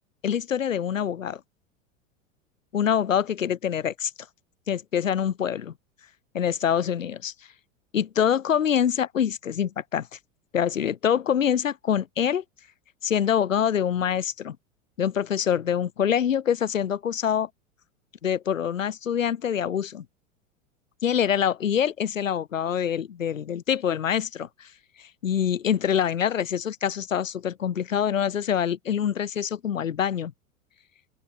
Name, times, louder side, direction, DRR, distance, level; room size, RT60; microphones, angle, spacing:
voice 1, 0.2-1.4 2.7-4.1 4.7-5.7 6.3-7.3 7.9-10.1 10.5-12.4 13.0-14.6 15.0-17.5 18.2-20.1 21.0-24.7 25.2-30.3, left 8 dB, 70° left, 7.3 m, -25 dB
open air
figure-of-eight pair, 90°, 40 cm